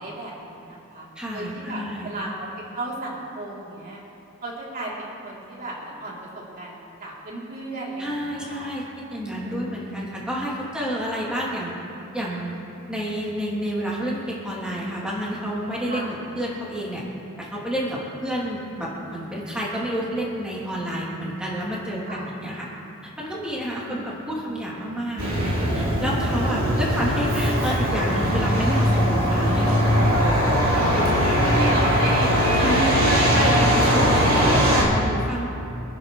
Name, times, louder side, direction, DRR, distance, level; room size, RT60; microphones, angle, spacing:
voice 1, 0.0-2.3 2.5-4.0 4.4-8.7 9.2-9.7 15.9-16.1 22.1-22.3 23.8-24.2 26.4-26.6 30.7-34.1 35.3-35.5, right 1 dB, 45° right, -6 dB, 3.6 m, -35 dB
voice 2, 1.1-2.1 8.0-8.8 9.1-11.7 12.1-12.5 12.9-17.0 17.4-22.7 23.2-31.5 32.6-35.5, equal, 5° right, -6 dB, 3.2 m, -29 dB
Truck, 25.2-34.8, equal, 70° right, 3.8 m, -20 dB
27.0 x 10.5 x 3.4 m, 2.8 s
head